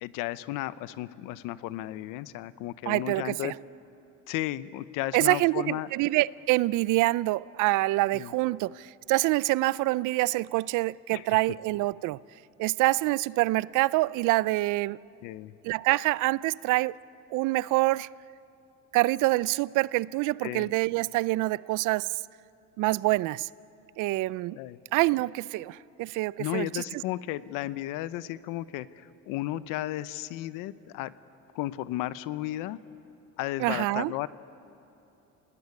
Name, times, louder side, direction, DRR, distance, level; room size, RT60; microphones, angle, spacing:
voice 1, 0.0-3.5 4.3-5.9 8.1-8.3 11.1-11.2 15.2-15.5 20.4-20.7 24.5-24.8 26.4-31.1 31.5-32.8 33.4-34.3, left 15 dB, 90° left, 0.9 m, -34 dB
voice 2, 2.9-3.5 5.1-12.2 12.6-15.0 15.6-17.0 17.3-18.1 18.9-22.1 22.8-23.5 24.0-24.6 24.9-26.8 33.6-34.1, right 19 dB, 70° right, 0.5 m, -26 dB
28.5 x 19.0 x 9.8 m
cardioid pair, 125°, 31 cm